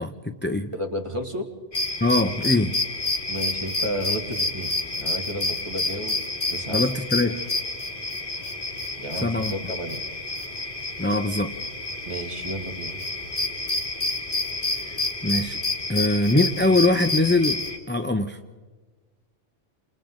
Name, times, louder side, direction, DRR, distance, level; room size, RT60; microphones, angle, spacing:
voice 1, 0.0-0.7 2.0-2.8 6.7-7.4 9.2-9.5 11.0-11.5 15.2-15.6 15.9-18.4, left 2 dB, 10° left, 6 dB, 0.7 m, -22 dB
voice 2, 0.7-1.5 3.3-6.2 6.5-6.8 9.0-10.0 12.1-13.0, right 1 dB, 25° right, 2 dB, 2.5 m, -32 dB
sound 1, 1.7-17.8, left 2 dB, 45° left, 2.7 m, -29 dB
29.0 x 28.0 x 3.9 m, 1.4 s
omnidirectional pair, 1.2 m